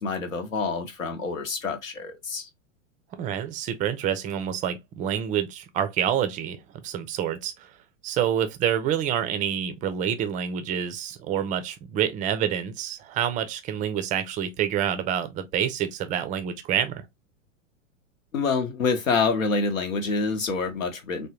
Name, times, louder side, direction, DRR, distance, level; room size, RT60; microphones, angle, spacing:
voice 1, 0.0-2.5 18.3-21.3, left 4 dB, 85° left, 1.0 m, -27 dB
voice 2, 3.2-6.6 6.8-7.7 8.0-17.0, right 9 dB, 20° right, 0.4 m, -27 dB
3.5 x 2.2 x 2.8 m
hypercardioid pair, 100°, 39 cm